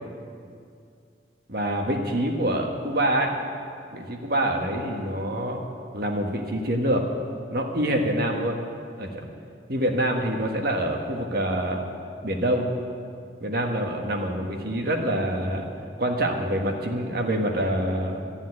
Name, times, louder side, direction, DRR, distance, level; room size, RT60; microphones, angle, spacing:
voice 1, 1.5-3.3 3.9-5.6 5.9-7.0 7.5-8.6 9.0-9.3 9.7-11.8 12.2-12.7 13.4-15.7 16.0-18.2, right 1 dB, 55° right, 3 dB, 1.5 m, -26 dB
13.5 x 7.3 x 9.7 m, 2.3 s
head